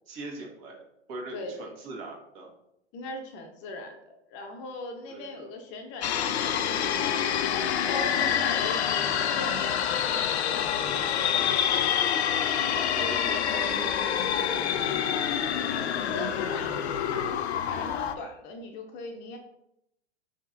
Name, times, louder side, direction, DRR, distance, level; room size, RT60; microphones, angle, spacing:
voice 1, 0.1-0.8 1.1-2.5 5.1-5.5 12.5-14.3, right 3 dB, 45° right, -1 dB, 1.5 m, -40 dB
voice 2, 1.3-1.7 2.9-7.4 7.9-11.6 16.0-19.4, left 2 dB, 35° left, 3 dB, 0.7 m, -39 dB
sound 1, 6.0-18.1, left 9 dB, 75° left, 0.5 m, -27 dB
5.3 x 3.7 x 2.6 m, 0.81 s
hypercardioid pair, 110°, 33 cm